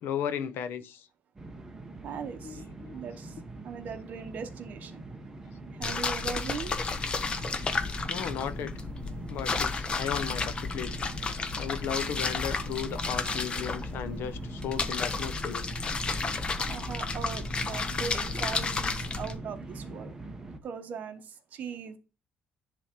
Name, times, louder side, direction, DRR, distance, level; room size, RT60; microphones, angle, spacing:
voice 1, 0.0-1.1 2.4-2.5 2.8-3.0 7.8-8.7 9.3-11.0 11.6-15.6, left 8 dB, 60° left, 0.7 m, -35 dB
sound 1, 1.4-20.6, right 2 dB, 10° right, 0.9 m, -43 dB
voice 2, 2.0-2.6 2.9-3.4 3.6-5.0 5.7-6.8 16.7-20.1 20.6-22.0, right 6 dB, 40° right, 1.0 m, -39 dB
sound 2, 5.8-19.3, left 4 dB, 25° left, 0.7 m, -32 dB
10.5 x 3.5 x 4.3 m
cardioid pair, 175°, 4 cm